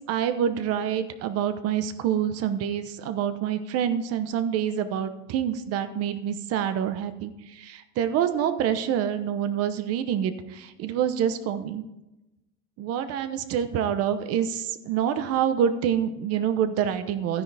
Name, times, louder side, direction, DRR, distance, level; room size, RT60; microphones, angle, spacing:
voice 1, 0.1-11.8 12.8-17.4, right 9 dB, 45° right, 10 dB, 0.9 m, -27 dB
13.0 x 9.9 x 3.4 m, 0.95 s
cardioid pair, 155°, 35 cm